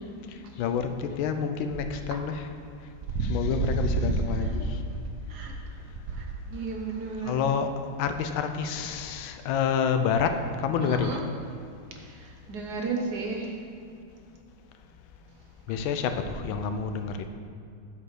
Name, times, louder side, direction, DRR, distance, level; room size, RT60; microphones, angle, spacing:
voice 1, 0.6-2.5 3.2-4.6 7.2-7.7 8.0-10.4 10.6-11.2 15.7-17.1, left 7 dB, 80° left, 7 dB, 1.4 m, -28 dB
voice 2, 4.0-4.7 5.3-5.5 6.2-7.3 10.8-11.2 12.5-13.5, right 3 dB, 65° right, 2 dB, 1.2 m, -30 dB
7.8 x 4.9 x 6.4 m, 2.4 s
omnidirectional pair, 2.2 m